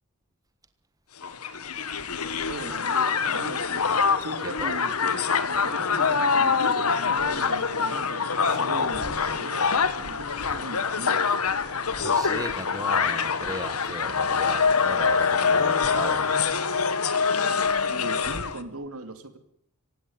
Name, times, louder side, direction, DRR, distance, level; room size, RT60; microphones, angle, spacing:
Crowd, 1.2-18.6, left 5 dB, 85° left, 1.6 m, -25 dB
voice 1, 2.5-3.9 4.2-11.2 17.9-19.4, right 2 dB, 75° right, 9 dB, 2.5 m, -39 dB
voice 2, 4.4-4.8 11.9-16.2, right 2 dB, 15° right, 10 dB, 1.3 m, -37 dB
17.5 x 16.5 x 9.6 m, 0.65 s
head